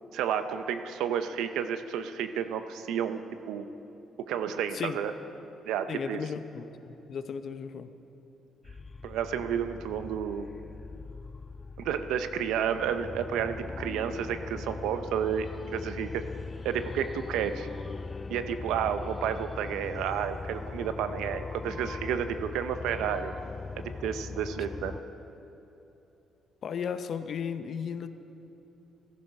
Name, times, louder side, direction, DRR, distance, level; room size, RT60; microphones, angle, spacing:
voice 1, 0.1-3.2 3.5-3.6 4.3-5.1 5.7-6.2 9.0-10.5 11.8-16.2 16.6-17.7 18.3-23.3 23.8-24.9, right 8 dB, 90° right, 10 dB, 0.7 m, -31 dB
voice 2, 5.9-7.9 26.6-28.1, left 7 dB, 55° left, 10 dB, 0.8 m, -35 dB
sound 1, 8.6-25.0, left 4 dB, 30° left, 0.4 m, -40 dB
15.5 x 14.0 x 5.4 m, 2.9 s
cardioid pair, 90°, 0 cm